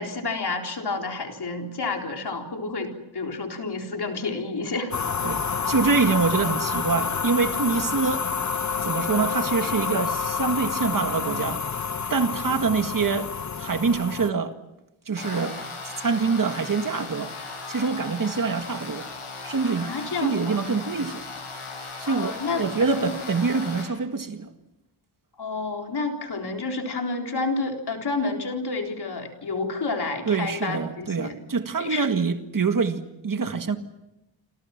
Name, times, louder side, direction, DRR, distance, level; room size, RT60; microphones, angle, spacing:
voice 1, 0.0-4.9 19.8-20.6 22.1-22.6 22.9-23.1 25.4-31.4 31.8-32.1, left 3 dB, 50° left, 4.1 m, -30 dB
sound 1, 4.9-14.3, left 6 dB, 35° left, 0.8 m, -28 dB
voice 2, 5.7-8.3 8.8-11.6 12.1-13.3 13.6-14.6 15.1-15.6 16.0-17.3 17.7-19.1 19.4-21.2 22.0-24.5 30.3-33.8, right 4 dB, 40° right, 1.9 m, -25 dB
sound 2, 15.2-23.8, left 4 dB, 85° left, 7.3 m, -37 dB
29.0 x 26.5 x 6.0 m
wide cardioid pair, 170°, 49 cm